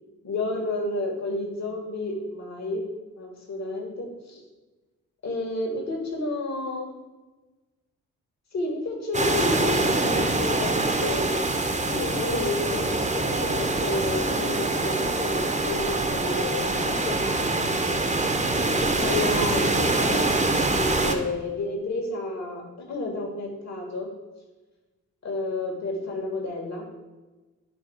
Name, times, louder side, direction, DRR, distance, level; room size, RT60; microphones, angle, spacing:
voice 1, 0.2-2.8 3.2-4.4 5.2-6.9 8.5-11.4 11.9-17.7 18.8-24.1 25.2-26.8, left 2 dB, 50° left, -1 dB, 2.3 m, -31 dB
sound 1, 9.1-21.2, right 2 dB, 20° right, 1.1 m, -25 dB
10.0 x 3.5 x 5.0 m, 1.2 s
hypercardioid pair, 45°, 34 cm